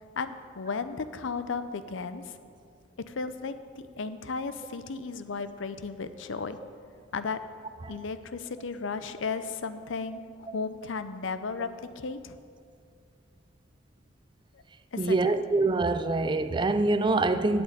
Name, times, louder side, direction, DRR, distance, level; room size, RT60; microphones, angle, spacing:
voice 1, 0.2-2.4 3.1-6.6 7.1-7.4 7.9-12.4 14.5-14.6 14.9-15.4, left 4 dB, 70° left, 0.6 m, -35 dB
voice 2, 15.0-17.6, right 3 dB, 25° right, 0.4 m, -25 dB
8.6 x 7.9 x 8.9 m
head